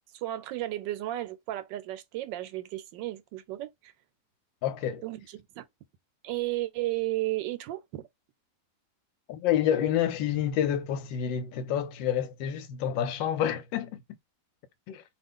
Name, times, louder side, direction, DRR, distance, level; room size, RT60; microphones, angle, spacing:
voice 1, 0.1-3.9 5.0-5.6 6.2-8.0, right 16 dB, 80° right, 1.3 m, -33 dB
voice 2, 4.6-5.0 9.3-14.0 14.9-15.0, left 10 dB, 90° left, 1.3 m, -28 dB
2.8 x 2.4 x 3.5 m
omnidirectional pair, 2.0 m